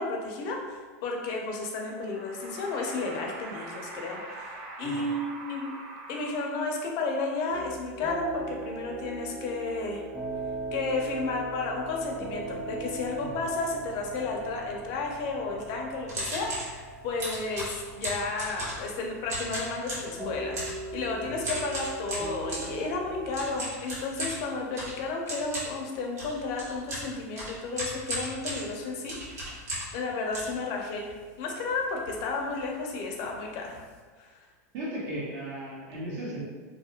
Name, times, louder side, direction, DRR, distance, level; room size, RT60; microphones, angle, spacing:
voice 1, 0.0-5.7 6.1-10.0 10.7-29.7 29.9-33.8 34.2-34.4, left 3 dB, 50° left, 0 dB, 0.5 m, -33 dB
sound 1, 1.9-7.0, right 2 dB, 40° right, 0.5 m, -43 dB
sound 2, 7.5-23.6, right 3 dB, 10° right, 0.8 m, -39 dB
sound 3, 16.1-16.7 17.2-18.9 19.3-20.1 20.5-20.8 21.4-22.7 23.3-30.0 30.3-31.2 31.7-31.8 31.9-32.2 32.5-32.7 33.3-33.4 33.6-33.9, right 1 dB, 90° right, 1.0 m, -36 dB
voice 2, 34.7-36.4, right 1 dB, 55° right, -5 dB, 0.9 m, -36 dB
2.4 x 2.0 x 2.8 m, 1.5 s
supercardioid pair, 125°, 8 cm